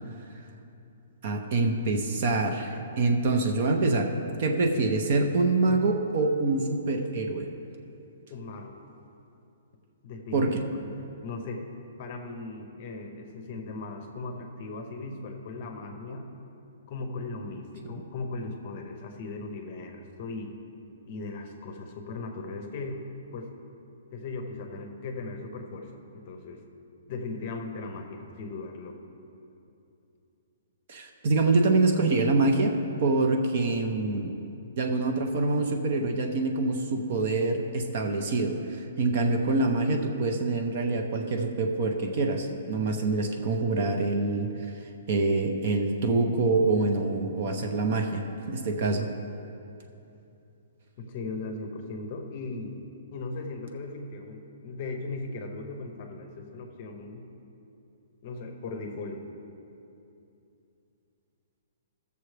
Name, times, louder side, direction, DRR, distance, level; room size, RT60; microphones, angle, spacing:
voice 1, 1.2-4.1 4.4-7.5 10.3-10.6 30.9-32.7 33.0-34.4 34.8-44.5 45.1-49.1, right 3 dB, 35° right, 4 dB, 0.6 m, -25 dB
voice 2, 8.3-8.8 10.0-10.6 10.8-11.6 12.0-16.3 16.9-20.5 21.1-23.0 23.3-23.5 24.1-26.6 27.1-29.0 51.0-52.7 53.1-57.2 58.2-59.2, left 3 dB, 30° left, 4 dB, 0.7 m, -38 dB
15.0 x 6.8 x 3.3 m, 2.8 s
hypercardioid pair, 180°, 0 cm